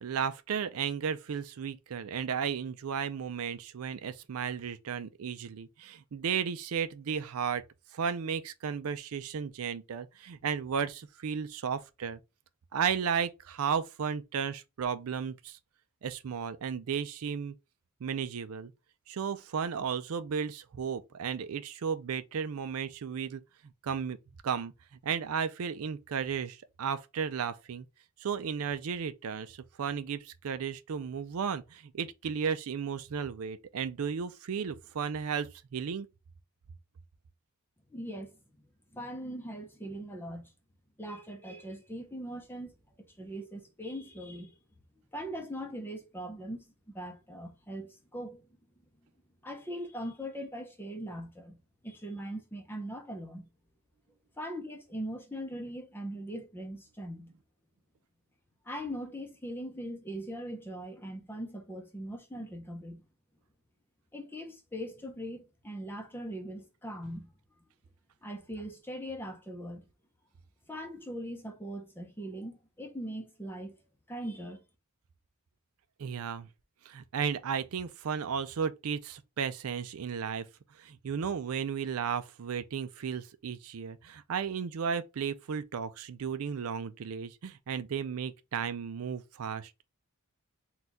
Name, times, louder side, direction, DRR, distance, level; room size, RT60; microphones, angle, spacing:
voice 1, 0.0-7.6 7.9-12.2 12.7-15.6 16.0-17.6 18.0-18.7 19.1-23.4 23.8-24.2 24.4-24.7 25.0-27.9 28.2-36.1 76.0-76.5 76.8-80.5 80.8-89.8, right 7 dB, 75° right, 0.4 m, -34 dB
voice 2, 37.9-38.4 38.9-40.5 41.0-44.5 45.1-48.5 49.4-51.6 51.8-53.5 54.4-57.3 58.7-63.0 64.1-67.3 68.2-69.8 70.7-73.7 74.1-74.6, equal, 10° left, 0.7 m, -40 dB
4.3 x 2.3 x 3.7 m
head